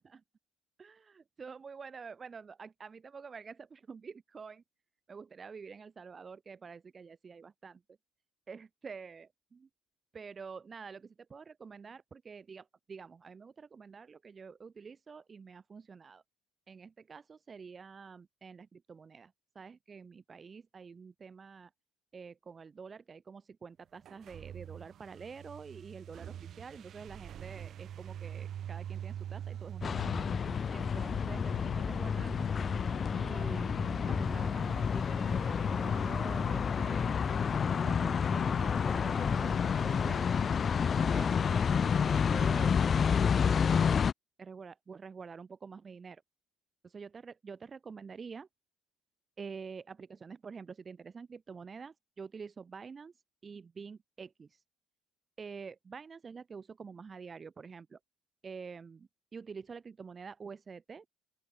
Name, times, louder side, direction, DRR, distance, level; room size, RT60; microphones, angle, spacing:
voice 1, 0.8-4.6 5.1-7.8 8.5-9.7 10.1-16.2 16.7-21.7 22.1-30.2 30.7-32.5 33.1-37.2 37.7-40.3 40.9-43.9 44.4-46.2 46.9-48.5 49.4-53.1 53.4-54.6 55.4-58.0 58.4-61.1, right 5 dB, 35° right, 2.3 m, -48 dB
sound 1, 24.0-41.5, right 10 dB, 55° right, 1.3 m, -47 dB
sound 2, 29.8-44.1, left 6 dB, 40° left, 0.3 m, -29 dB
open air
supercardioid pair, 85°, 0 cm